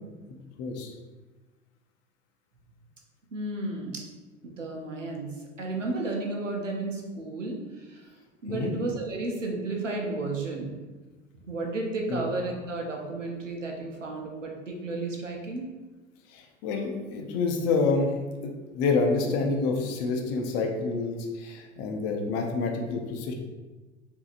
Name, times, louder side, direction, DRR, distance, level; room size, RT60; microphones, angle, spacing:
voice 1, 0.6-0.9 8.5-8.7 12.1-12.2 16.3-18.1 18.4-23.3, left 3 dB, 40° left, 2 dB, 0.7 m, -28 dB
voice 2, 3.3-4.1 4.4-8.1 8.4-10.8 11.4-15.7, right 2 dB, 85° right, 0 dB, 0.7 m, -33 dB
4.8 x 2.8 x 2.5 m, 1.2 s
figure-of-eight pair, 80°, 36 cm